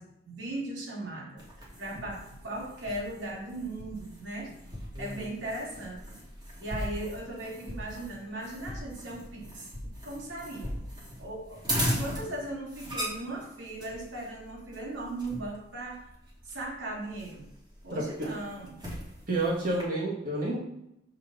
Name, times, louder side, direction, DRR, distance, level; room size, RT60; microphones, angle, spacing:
voice 1, 0.0-4.5 5.0-6.0 6.6-9.7 10.0-10.7 11.2-16.0 16.4-17.5 17.8-18.8, right 1 dB, 75° right, -2 dB, 2.4 m, -38 dB
sound 1, 1.4-19.8, equal, 25° right, 2.5 m, -39 dB
voice 2, 4.9-5.3 17.9-18.3 19.3-20.6, right 2 dB, 50° right, -4 dB, 1.9 m, -30 dB
5.6 x 5.4 x 6.8 m, 0.80 s
head